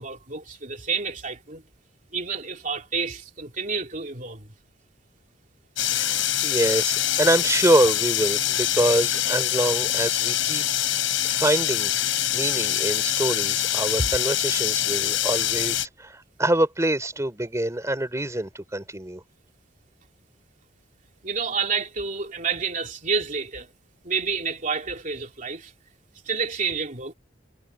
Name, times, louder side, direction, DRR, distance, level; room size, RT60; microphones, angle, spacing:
voice 1, 0.0-1.6 2.1-4.5 14.0-14.1 21.2-23.7 24.0-25.7 26.2-27.1, right 5 dB, 40° right, 2.9 m, -29 dB
sound 1, 5.8-15.9, left 12 dB, 85° left, 4.1 m, -24 dB
voice 2, 6.0-19.2, right 1 dB, 15° right, 3.4 m, -25 dB
head